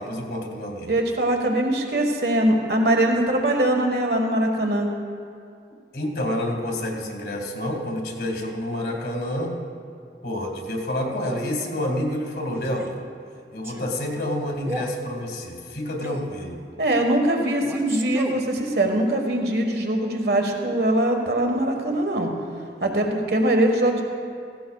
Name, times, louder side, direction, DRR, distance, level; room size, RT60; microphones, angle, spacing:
voice 1, 0.0-0.9 5.9-9.6 10.2-13.0 13.5-16.6, left 1 dB, 65° left, 1 dB, 1.8 m, -28 dB
voice 2, 0.9-4.9 16.8-22.3 22.8-24.0, right 1 dB, 65° right, 3 dB, 1.5 m, -22 dB
Male speech man speaking, 12.6-13.0 13.6-13.9 14.6-15.0 16.0-16.4 17.6-18.5, right 1 dB, 15° right, 0.6 m, -34 dB
16.5 x 16.0 x 2.3 m, 2.3 s
head